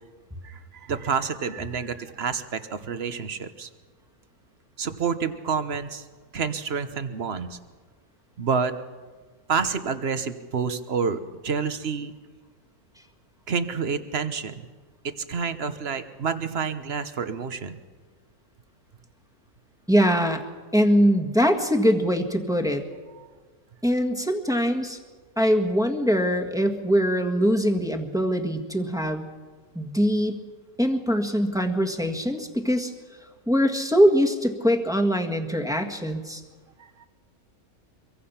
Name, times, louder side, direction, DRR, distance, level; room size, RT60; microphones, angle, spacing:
voice 1, 0.4-3.7 4.8-6.0 6.3-7.6 8.4-8.7 9.5-12.1 13.5-14.7 15.0-17.8 23.2-23.3 36.8-37.1, right 6 dB, 45° right, 11 dB, 1.2 m, -28 dB
voice 2, 19.9-20.4 20.7-22.8 23.8-25.0 25.4-29.3 29.7-30.4 30.8-32.9 33.5-36.4, equal, ahead, 3 dB, 1.5 m, -22 dB
25.0 x 23.5 x 5.8 m, 1.5 s
omnidirectional pair, 1.6 m